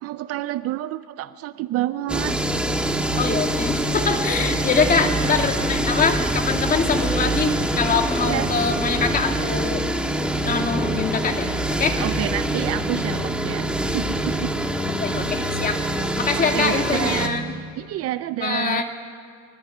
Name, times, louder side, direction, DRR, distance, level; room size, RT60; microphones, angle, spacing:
voice 1, 0.0-2.4 8.2-8.5 12.0-14.5 16.4-17.4 17.8-18.8, right 14 dB, 45° right, 14 dB, 0.5 m, -28 dB
sound 1, 2.1-17.3, right 1 dB, 5° right, 1.6 m, -24 dB
voice 2, 3.2-9.9 10.4-11.5 11.8-12.0 15.0-15.8 16.2-17.5 18.4-18.8, left 5 dB, 25° left, 4 dB, 2.4 m, -23 dB
24.5 x 22.0 x 9.0 m, 2.4 s
cardioid pair, 155°, 33 cm